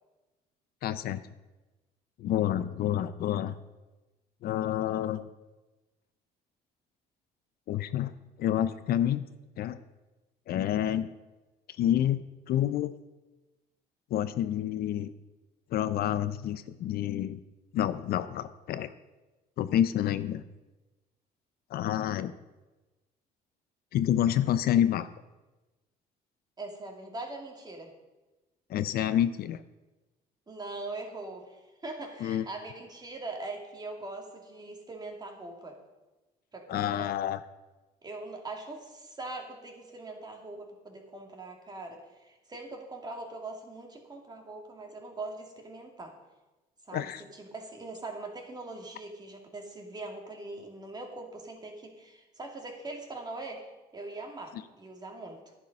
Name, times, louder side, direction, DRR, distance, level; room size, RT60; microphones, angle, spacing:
voice 1, 0.8-1.2 2.2-3.5 4.4-5.2 7.7-8.1 8.4-9.2 9.6-9.8 10.5-11.1 11.8-12.9 14.1-15.1 15.7-17.4 17.7-18.9 19.6-20.4 21.7-22.3 23.9-25.1 28.7-29.6 32.2-32.4 36.7-37.4 46.9-47.2 54.5-54.6, left 11 dB, 65° left, 13 dB, 0.6 m, -28 dB
voice 2, 26.6-27.9 30.5-35.8 36.5-37.1 38.0-46.1 46.9-55.5, right 2 dB, 25° right, 2 dB, 2.5 m, -42 dB
11.0 x 10.5 x 5.4 m, 1.1 s
cardioid pair, 110°, 17 cm